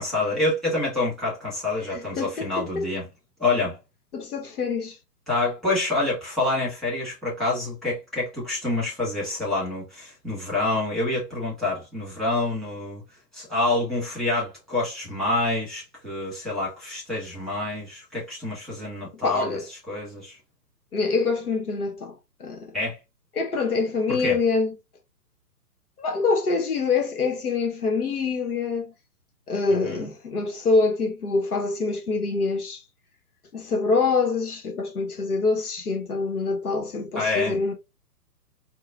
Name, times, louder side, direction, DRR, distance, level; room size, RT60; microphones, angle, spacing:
voice 1, 0.0-3.1 3.4-3.8 5.3-13.0 13.3-19.6 19.9-20.3 22.7-23.0 24.1-24.4 29.8-30.1 37.1-37.6, left 2 dB, ahead, 1.6 m, -27 dB
voice 2, 1.9-2.9 4.1-5.0 19.2-19.6 20.9-22.1 22.4-22.7 23.3-24.7 26.0-28.9 29.5-32.8 33.5-37.7, left 4 dB, 70° left, 1.0 m, -25 dB
4.7 x 2.1 x 2.4 m
figure-of-eight pair, 130°, 47 cm